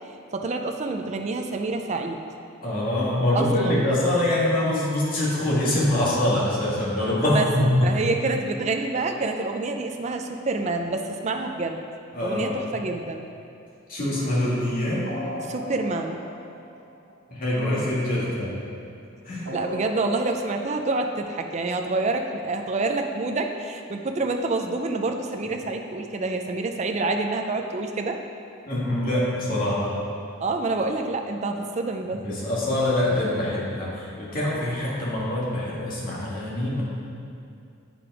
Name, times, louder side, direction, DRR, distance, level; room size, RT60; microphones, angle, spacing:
voice 1, 0.3-2.2 3.3-3.9 7.3-7.5 7.8-11.8 12.2-13.2 15.4-16.2 19.5-28.2 30.4-32.2, right 3 dB, 35° right, 4 dB, 0.4 m, -27 dB
voice 2, 2.6-7.9 12.1-12.6 13.9-15.0 17.3-18.5 19.2-19.5 28.6-29.9 32.2-36.8, left 1 dB, 45° left, -7 dB, 2.0 m, -24 dB
sound 1, 14.1-17.4 19.4-21.2, equal, 90° right, 1.5 m, -37 dB
8.6 x 5.2 x 4.8 m, 2.5 s
head